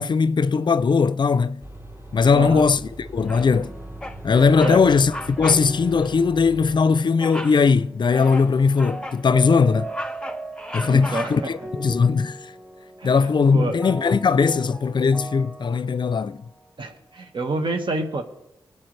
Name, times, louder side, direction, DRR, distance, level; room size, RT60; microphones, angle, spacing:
voice 1, 0.0-1.6 2.1-3.7 4.2-9.9 10.7-12.4 13.0-16.4, left 5 dB, 55° left, 0.5 m, -19 dB
sound 1, 1.6-6.8, right 1 dB, 30° right, 4.7 m, -40 dB
voice 2, 2.3-2.6 4.6-5.0 10.9-11.5 13.0-13.8 16.8-18.2, right 2 dB, 65° right, 1.6 m, -28 dB
Bird vocalization bird call bird song, 3.3-3.7 4.0-4.2 4.5-4.8 5.1-5.7 6.0-6.2 7.2-7.6 8.1-9.2 9.7-11.6, left 1 dB, 10° left, 0.9 m, -35 dB
sound 2, 3.3-17.2, right 2 dB, 5° right, 3.9 m, -38 dB
20.0 x 8.2 x 3.3 m
cardioid pair, 45°, 9 cm